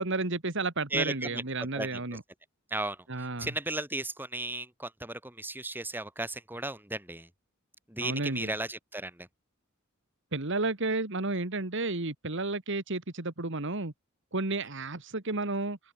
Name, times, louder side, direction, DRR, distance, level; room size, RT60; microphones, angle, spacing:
voice 1, 0.0-2.2 3.1-3.5 8.0-8.5 10.3-13.9 14.3-15.8, right 3 dB, 60° right, 2.1 m, -32 dB
voice 2, 0.9-2.2 2.7-7.3 7.9-9.3, right 2 dB, 10° right, 3.3 m, -35 dB
head